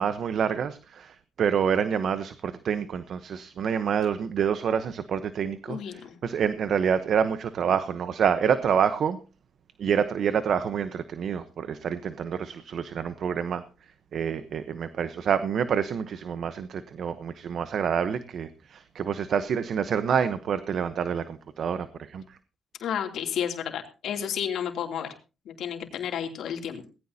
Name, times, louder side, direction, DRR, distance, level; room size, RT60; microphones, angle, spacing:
voice 1, 0.0-5.8 6.2-9.2 9.8-13.6 14.1-22.2, right 7 dB, 60° right, 12 dB, 0.9 m, -27 dB
voice 2, 5.7-6.1 22.8-25.1 25.4-26.8, left 9 dB, 75° left, 4 dB, 2.9 m, -31 dB
18.5 x 16.0 x 2.8 m, 0.32 s
cardioid pair, 90°, 0 cm